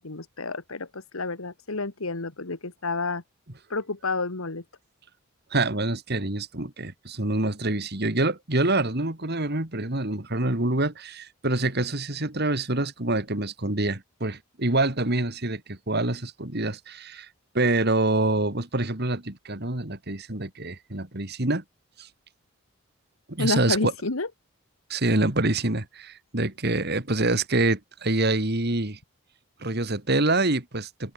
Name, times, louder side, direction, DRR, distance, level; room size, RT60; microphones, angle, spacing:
voice 1, 0.0-3.2 3.7-4.6 23.4-24.3, left 3 dB, 80° left, 1.7 m, -30 dB
voice 2, 5.5-17.3 17.5-21.6 22.0-22.1 23.3-23.9 24.9-29.0 29.6-31.1, right 2 dB, 50° right, 2.7 m, -26 dB
open air
head